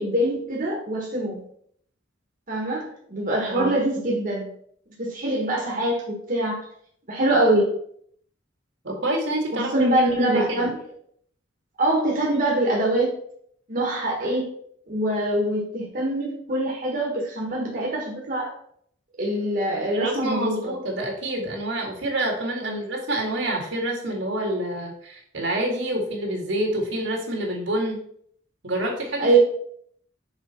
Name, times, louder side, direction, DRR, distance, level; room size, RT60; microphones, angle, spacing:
voice 1, 0.0-1.4 2.5-4.5 5.0-6.6 7.1-7.7 9.5-10.7 11.8-13.1 13.7-14.5 14.9-18.5 19.2-20.7 22.6-22.8 29.2-29.4, right 1 dB, 45° right, -2 dB, 1.5 m, -24 dB
voice 2, 8.8-9.9 10.2-10.6 19.9-28.0 28.6-29.4, right 1 dB, 75° right, 1 dB, 2.0 m, -27 dB
6.2 x 4.9 x 4.3 m, 0.65 s
head